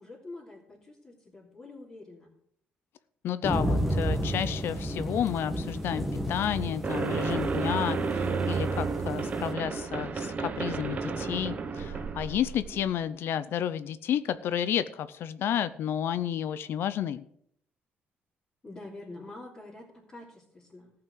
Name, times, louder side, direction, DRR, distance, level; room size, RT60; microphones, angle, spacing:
voice 1, 0.0-2.3 18.6-20.9, left 2 dB, 25° left, -6 dB, 3.2 m, -46 dB
voice 2, 3.2-17.2, left 10 dB, 65° left, 14 dB, 0.6 m, -31 dB
sound 1, 3.4-9.5, equal, ahead, 1.9 m, -32 dB
sound 2, 6.8-12.9, right 4 dB, 35° right, 1.1 m, -31 dB
14.5 x 5.9 x 7.7 m, 0.70 s
cardioid pair, 120°, 4 cm